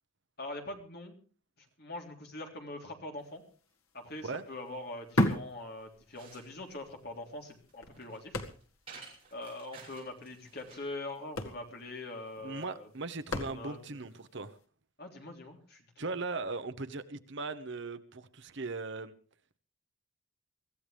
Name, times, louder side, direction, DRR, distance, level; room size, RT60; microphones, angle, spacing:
voice 1, 0.4-1.2 1.6-3.4 3.9-8.4 9.3-12.9 13.3-14.0 15.0-16.1, left 2 dB, 50° left, 2 dB, 3.5 m, -43 dB
sound 1, 3.4-3.5 3.8-6.4 6.8-6.9 7.5-9.0 9.2-9.3 9.6-9.9 10.7-10.9 11.1-14.0 14.6-14.7, left 1 dB, 80° left, 1.9 m, -34 dB
sound 2, 5.8-10.9, right 5 dB, 25° right, 7.3 m, -54 dB
voice 2, 12.4-14.6 16.0-19.1, right 3 dB, 55° right, 11 dB, 1.0 m, -38 dB
24.5 x 15.0 x 3.4 m, 0.39 s
head